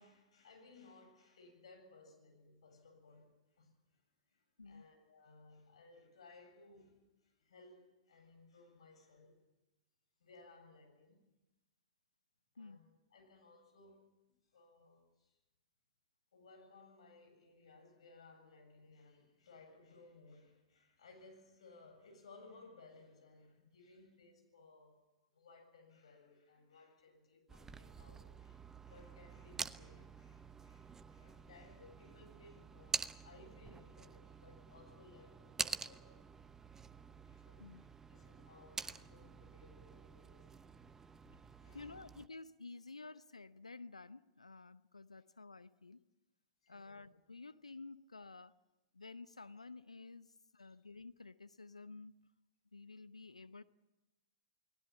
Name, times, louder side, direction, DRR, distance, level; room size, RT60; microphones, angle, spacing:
voice 1, 0.0-3.7 4.3-9.4 10.2-11.2 12.5-15.3 16.3-24.9 25.3-36.3 37.2-40.6 41.6-42.0 46.6-47.1 50.6-50.8, left 3 dB, 65° left, 4 dB, 7.9 m, -61 dB
sound 1, 27.5-42.3, right 5 dB, 15° right, 0.9 m, -47 dB
voice 2, 41.7-46.0 46.7-48.5 48.9-52.2 52.7-53.6, left 3 dB, 85° left, 15 dB, 0.8 m, -52 dB
29.0 x 20.0 x 7.3 m, 1.0 s
figure-of-eight pair, 105°, 3 cm